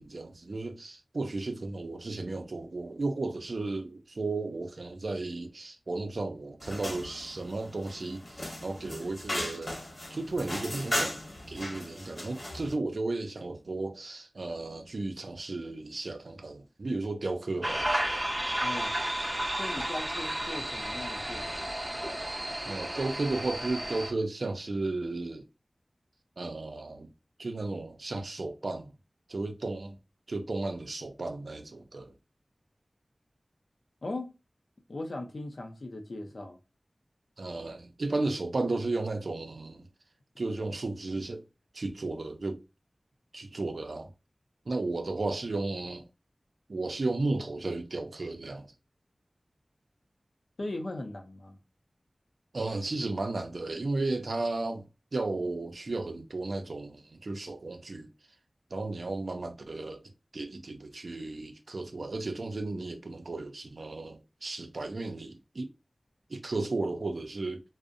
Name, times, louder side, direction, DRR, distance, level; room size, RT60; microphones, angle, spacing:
voice 1, 0.0-9.8 10.1-17.9 22.7-25.5 26.4-27.1 27.4-28.9 29.3-30.0 30.3-32.1 37.4-39.9 40.4-41.4 41.7-42.6 43.3-44.1 44.7-46.1 46.7-48.7 52.5-54.8 55.1-58.1 58.7-60.0 60.3-65.7 66.3-67.6, right 2 dB, 75° right, 0.4 m, -34 dB
sound 1, 6.6-12.7, left 1 dB, 50° left, 1.0 m, -37 dB
sound 2, 17.6-24.1, right 1 dB, 25° right, 0.5 m, -32 dB
voice 2, 18.6-19.0 19.6-21.8 34.0-34.3 34.9-36.6 50.6-51.6, left 2 dB, 75° left, 0.5 m, -39 dB
2.5 x 2.0 x 2.5 m
wide cardioid pair, 50°, 0 cm